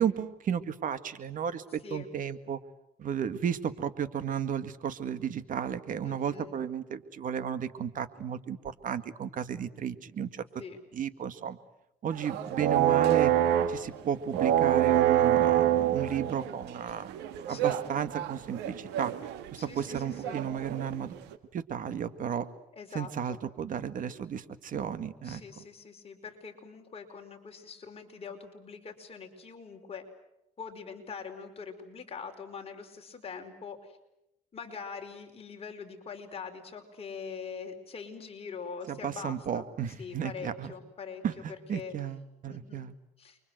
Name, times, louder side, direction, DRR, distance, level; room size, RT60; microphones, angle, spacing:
voice 1, 0.0-2.6 3.0-10.4 10.9-11.6 12.0-13.3 13.7-19.1 19.5-21.2 21.5-22.5 22.9-25.4 38.9-40.7 41.2-42.9, right 8 dB, 50° right, 12 dB, 1.9 m, -33 dB
voice 2, 6.0-6.6 10.6-10.8 17.5-17.8 19.5-20.4 22.7-23.4 25.2-30.0 30.6-33.9 34.5-39.6 40.0-41.2 41.7-41.9 42.5-42.8 43.2-43.4, left 5 dB, 35° left, 4 dB, 5.0 m, -43 dB
sound 1, 12.1-13.9 14.3-21.0 21.3-21.4, right 11 dB, 90° right, 2.0 m, -26 dB
29.5 x 24.0 x 7.9 m, 0.84 s
cardioid pair, 110°, 17 cm